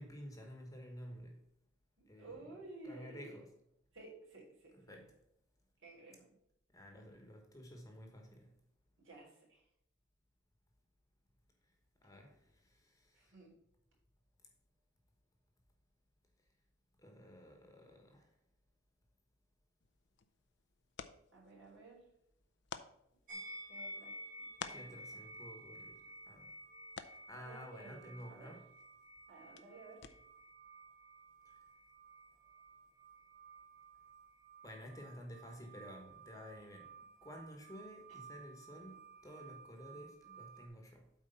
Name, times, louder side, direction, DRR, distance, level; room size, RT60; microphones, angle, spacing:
voice 1, 0.0-1.4 2.1-2.4 2.8-3.5 4.8-5.2 6.7-8.6 11.6-11.7 12.0-13.4 17.0-18.4 24.7-26.6 27.3-28.7 31.4-31.6 34.6-41.1, equal, 15° left, 1.3 m, -52 dB
voice 2, 2.0-3.4 3.9-4.8 5.8-6.3 9.0-9.6 13.1-13.6 21.3-22.0 23.3-25.0 27.3-28.6 29.3-30.0, right 3 dB, 70° right, 3.7 m, -55 dB
sound 1, 19.8-30.5, left 6 dB, 60° left, 0.6 m, -55 dB
sound 2, 23.3-40.7, right 2 dB, 45° right, 1.2 m, -54 dB
8.1 x 4.5 x 5.6 m
head